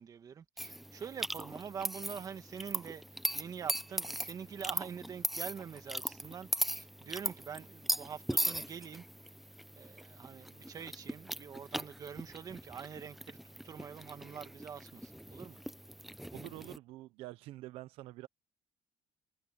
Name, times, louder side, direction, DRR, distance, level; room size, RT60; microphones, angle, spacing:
voice 1, 0.0-9.1 9.8-13.4 13.6-15.6, right 7 dB, 40° right, 1.8 m, -45 dB
sound 1, 0.6-16.8, equal, ahead, 0.7 m, -39 dB
voice 2, 16.3-18.3, right 17 dB, 85° right, 0.8 m, -47 dB
cardioid pair, 130°, 10 cm